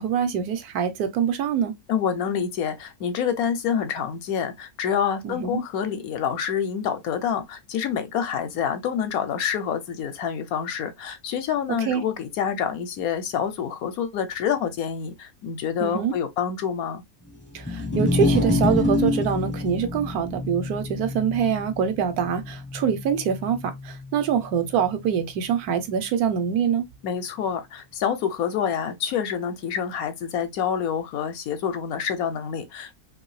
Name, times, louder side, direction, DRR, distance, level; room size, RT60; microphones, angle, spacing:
voice 1, 0.0-1.8 5.2-5.6 11.8-12.0 15.8-16.1 17.5-26.9, right 7 dB, 75° right, 1.1 m, -25 dB
voice 2, 1.9-17.0 27.0-33.0, left 8 dB, 75° left, 1.1 m, -27 dB
sound 1, 17.5-23.9, left 2 dB, 15° left, 0.5 m, -26 dB
2.7 x 2.7 x 3.0 m
omnidirectional pair, 1.6 m